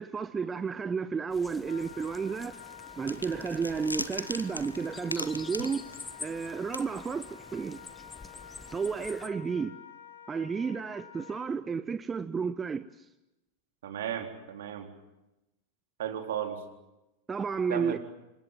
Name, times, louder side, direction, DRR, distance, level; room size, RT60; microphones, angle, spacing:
voice 1, 0.0-2.6 3.0-5.8 6.2-7.8 8.7-9.8 10.3-13.1 17.3-18.0, right 5 dB, 15° right, 0.8 m, -32 dB
sound 1, 1.3-9.3, left 4 dB, 15° left, 1.6 m, -48 dB
Wind instrument woodwind instrument, 1.6-11.5, left 7 dB, 70° left, 3.1 m, -49 dB
sound 2, 3.1-6.5 6.7-6.8, left 1 dB, 85° left, 1.3 m, -38 dB
voice 2, 13.8-14.9 16.0-16.6 17.7-18.0, right 10 dB, 60° right, 4.0 m, -34 dB
28.5 x 25.0 x 7.6 m
figure-of-eight pair, 90°, 0 cm